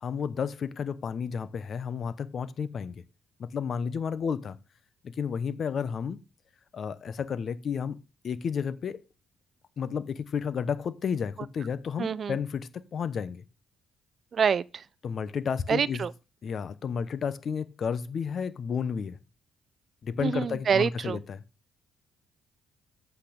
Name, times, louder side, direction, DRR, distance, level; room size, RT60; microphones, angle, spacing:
voice 1, 0.0-3.0 3.4-4.6 5.0-6.2 6.7-9.0 9.8-13.4 15.0-16.1 16.4-19.2 20.0-21.4, left 6 dB, 55° left, 0.9 m, -32 dB
voice 2, 12.0-12.4 14.3-14.8 15.7-16.1 20.2-21.2, right 7 dB, 50° right, 0.5 m, -26 dB
8.4 x 8.3 x 5.2 m
cardioid pair, 90°, 0 cm